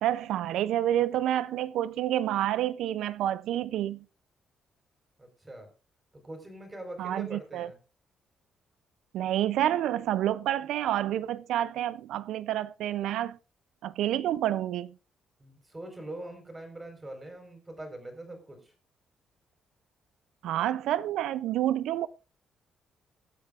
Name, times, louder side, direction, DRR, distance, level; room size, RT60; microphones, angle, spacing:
voice 1, 0.0-4.0 7.0-7.7 9.1-13.4 13.8-14.9 20.4-22.1, right 12 dB, 90° right, 0.4 m, -28 dB
voice 2, 5.2-5.7 6.2-7.8 15.4-18.7, right 1 dB, 15° right, 4.4 m, -43 dB
23.0 x 8.1 x 2.4 m
cardioid pair, 135°, 0 cm